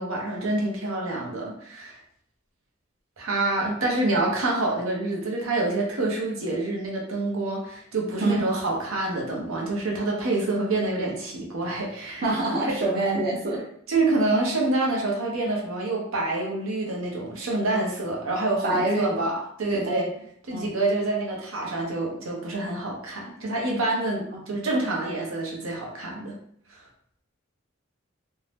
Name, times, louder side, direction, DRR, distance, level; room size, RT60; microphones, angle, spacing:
voice 1, 0.0-2.0 3.2-12.8 13.9-20.1 20.5-26.4, right 2 dB, 85° right, -2 dB, 0.8 m, -27 dB
voice 2, 12.2-13.6 18.6-19.1 19.7-20.1 20.5-20.7 24.3-24.4, right 2 dB, 45° right, -3 dB, 0.6 m, -25 dB
2.6 x 2.1 x 3.3 m, 0.66 s
head